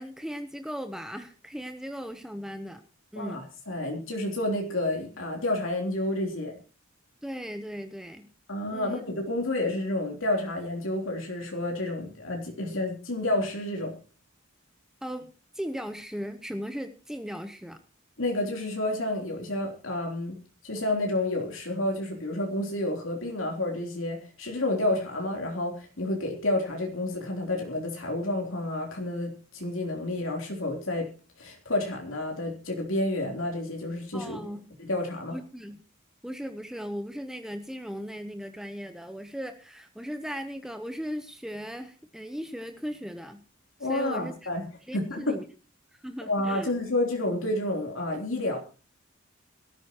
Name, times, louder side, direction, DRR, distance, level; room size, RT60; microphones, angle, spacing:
voice 1, 0.0-2.8 3.1-3.4 7.2-8.3 8.7-9.0 15.0-15.3 15.5-17.8 34.1-34.7 35.3-35.8 36.2-43.4 43.9-44.5 44.9-45.5 46.0-46.7, equal, 5° right, 7 dB, 0.9 m, -37 dB
voice 2, 3.2-6.5 8.5-14.0 18.2-20.4 20.6-31.1 31.4-34.4 34.8-35.4 43.8-44.7 44.9-45.4 46.3-48.6, left 1 dB, 70° left, 1 dB, 3.5 m, -30 dB
21.0 x 13.5 x 3.0 m, 0.35 s
head